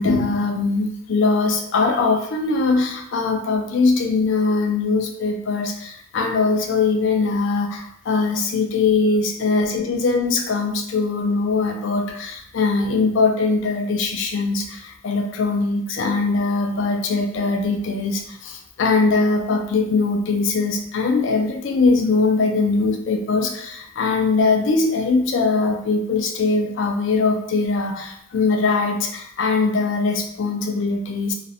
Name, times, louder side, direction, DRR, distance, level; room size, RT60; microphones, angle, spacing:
voice 1, 0.0-31.3, left 3 dB, 65° left, 4 dB, 0.3 m, -21 dB
2.4 x 2.0 x 2.7 m, 0.73 s
head